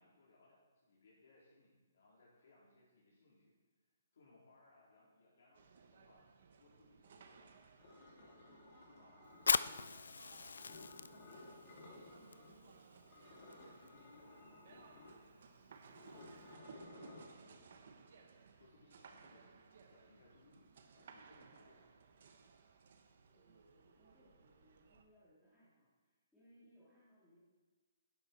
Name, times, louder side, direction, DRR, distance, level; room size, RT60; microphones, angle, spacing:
voice 1, 0.0-6.3 6.6-7.6 8.2-17.7 18.1-22.4, left 2 dB, 60° left, -6 dB, 3.5 m, -68 dB
sound 1, 5.5-25.0, right 5 dB, 50° right, 1.1 m, -61 dB
sound 2, 7.8-10.0 10.5-12.5 12.8-17.3, left 2 dB, 25° left, 2.2 m, -57 dB
Fire, 9.3-16.5, left 5 dB, 90° left, 0.4 m, -42 dB
voice 2, 23.3-27.4, equal, 5° left, -14 dB, 2.5 m, -68 dB
11.5 x 10.5 x 4.4 m, 1.3 s
hypercardioid pair, 170°, 0 cm